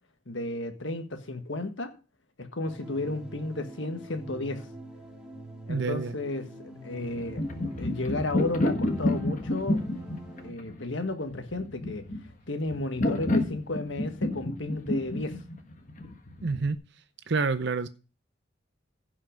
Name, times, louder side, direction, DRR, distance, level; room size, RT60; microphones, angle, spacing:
voice 1, 0.3-1.9 2.4-4.7 5.7-7.4 7.8-9.8 10.4-12.0 12.5-15.4, left 2 dB, 70° left, 1.5 m, -33 dB
sound 1, 2.6-10.5, right 1 dB, 5° right, 3.0 m, -45 dB
voice 2, 5.7-6.2 16.4-16.8 17.3-17.9, right 4 dB, 60° right, 0.6 m, -28 dB
sound 2, 7.0-16.7, left 1 dB, 40° left, 1.5 m, -30 dB
15.5 x 5.6 x 5.1 m
head